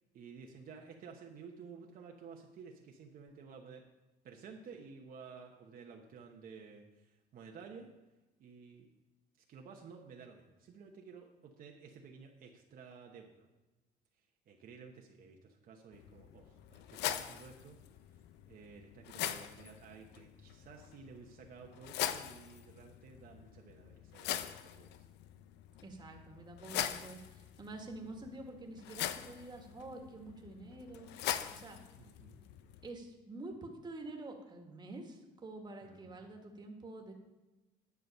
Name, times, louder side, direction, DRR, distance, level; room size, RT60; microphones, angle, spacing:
voice 1, 0.1-3.8 4.2-7.9 8.4-8.9 9.5-13.5 14.5-17.8 18.5-25.0 32.0-32.4 35.8-36.1, right 5 dB, 60° right, 1 dB, 1.1 m, -53 dB
sound 1, 15.9-32.9, left 11 dB, 85° left, 0.6 m, -43 dB
voice 2, 25.8-31.1 31.5-31.8 32.8-37.1, right 2 dB, 25° right, 2 dB, 1.7 m, -48 dB
10.5 x 6.2 x 5.5 m, 1.1 s
cardioid pair, 110°, 17 cm